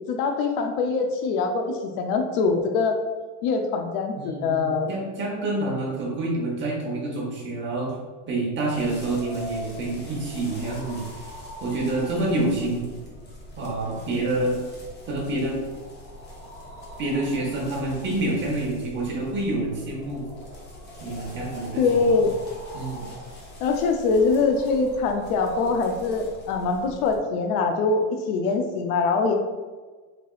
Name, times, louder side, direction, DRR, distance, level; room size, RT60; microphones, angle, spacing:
voice 1, 0.1-3.0 3.4-4.9 21.8-22.3 23.6-29.3, left 4 dB, 70° left, 5 dB, 0.6 m, -23 dB
voice 2, 4.2-7.9 8.3-11.0 11.6-12.9 13.6-14.6 15.1-15.6 17.0-20.2 21.0-21.8 22.7-23.1, right 2 dB, 25° right, -3 dB, 0.8 m, -27 dB
sound 1, 8.7-27.2, equal, 25° left, 0.6 m, -42 dB
3.5 x 3.4 x 2.3 m, 1.4 s
supercardioid pair, 145°, 47 cm